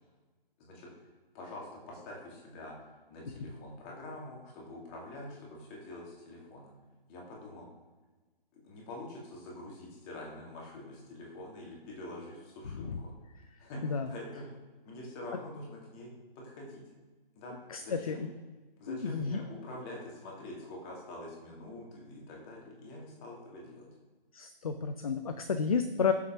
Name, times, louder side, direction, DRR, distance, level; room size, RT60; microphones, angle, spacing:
voice 1, 0.6-1.1 1.3-6.7 7.1-7.7 8.5-13.1 13.6-14.6 14.8-16.8 17.4-18.2 18.8-23.9, left 1 dB, 20° left, -2 dB, 2.3 m, -45 dB
voice 2, 17.7-18.3 18.9-19.4 24.3-26.1, left 5 dB, 40° left, 9 dB, 0.5 m, -31 dB
7.1 x 6.4 x 5.7 m, 1.3 s
figure-of-eight pair, 145°, 29 cm